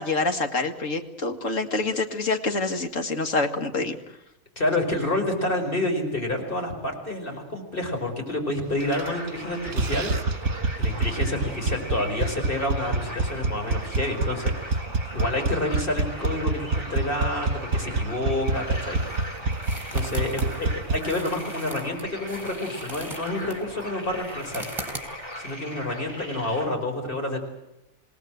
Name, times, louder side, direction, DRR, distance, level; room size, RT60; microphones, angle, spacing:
voice 1, 0.0-4.0, left 3 dB, 60° left, 6 dB, 2.5 m, -26 dB
voice 2, 4.6-10.1 10.8-14.8 15.1-19.3 19.9-24.7 25.4-27.4, left 1 dB, 35° left, 3 dB, 5.5 m, -29 dB
sound 1, 8.8-26.7, equal, 15° left, 5.3 m, -39 dB
sound 2, 8.8-9.4 9.7-21.0, right 3 dB, 60° right, 1.8 m, -27 dB
sound 3, 18.3-25.5, right 2 dB, 20° right, 4.8 m, -42 dB
27.0 x 19.0 x 7.9 m, 0.91 s
omnidirectional pair, 1.5 m